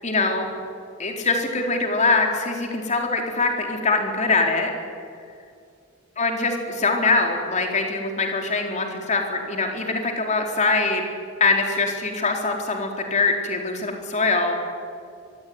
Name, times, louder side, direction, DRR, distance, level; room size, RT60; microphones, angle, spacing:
voice 1, 0.0-0.5 1.0-4.7 6.2-11.0 11.4-14.6, left 3 dB, 35° left, 2 dB, 4.1 m, -23 dB
25.5 x 23.0 x 9.7 m, 2.4 s
head